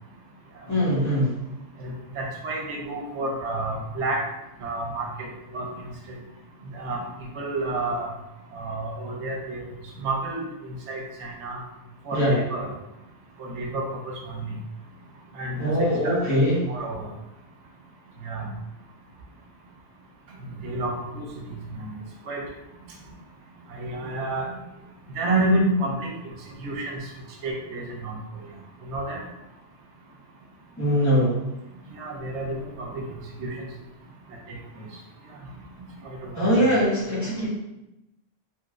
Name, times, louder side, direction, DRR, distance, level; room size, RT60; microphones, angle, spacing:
voice 1, 0.7-1.3 12.1-12.4 15.6-16.6 30.8-31.3 36.4-37.5, equal, 15° left, -8 dB, 1.0 m, -22 dB
voice 2, 1.8-4.2 4.6-5.7 6.7-8.1 8.5-9.6 10.0-11.6 12.1-12.7 13.4-14.6 15.3-15.7 16.0-16.2 16.7-17.1 18.2-18.5 20.6-21.3 21.7-21.9 22.3-22.4 23.7-24.5 25.1-26.1 26.6-27.0 27.4-28.1 28.8-29.2 32.0-33.0 33.4-33.7 34.5-34.6 36.0-36.6, right 2 dB, 75° right, 0 dB, 1.0 m, -29 dB
3.0 x 2.9 x 2.4 m, 0.92 s
omnidirectional pair, 1.2 m